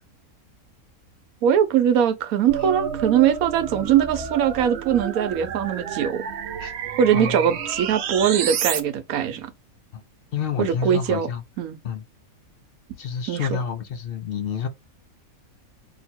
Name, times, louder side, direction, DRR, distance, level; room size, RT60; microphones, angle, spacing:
voice 1, 1.4-6.2 7.0-9.5 10.6-11.3 11.6-11.8 13.3-13.5, right 9 dB, 80° right, 1.1 m, -21 dB
sound 1, 2.5-8.8, right 8 dB, 60° right, 0.7 m, -30 dB
voice 2, 10.3-11.4 11.8-12.0 13.0-14.7, left 7 dB, 65° left, 0.6 m, -28 dB
2.8 x 2.8 x 4.2 m
omnidirectional pair, 1.5 m